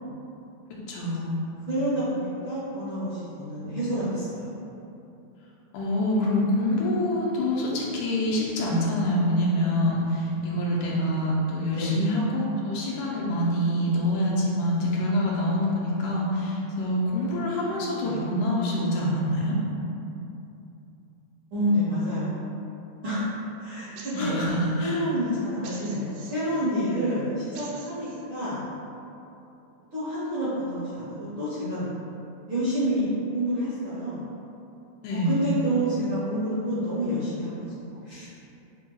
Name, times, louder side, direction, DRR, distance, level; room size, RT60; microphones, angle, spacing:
voice 1, 0.7-1.5 5.7-19.6 24.1-25.0 35.0-35.4, left 1 dB, 85° left, -4 dB, 2.2 m, -26 dB
voice 2, 1.7-4.5 11.7-12.0 18.0-18.2 21.5-22.4 23.0-23.3 23.6-24.4 24.8-28.6 29.9-31.8 32.5-34.3 35.1-37.7 38.0-38.3, equal, 65° right, -12 dB, 1.3 m, -28 dB
sound 1, 24.0-24.6 25.6-26.6 27.5-28.2, right 5 dB, 80° right, 2.0 m, -46 dB
7.0 x 2.8 x 2.3 m, 2.8 s
omnidirectional pair, 3.5 m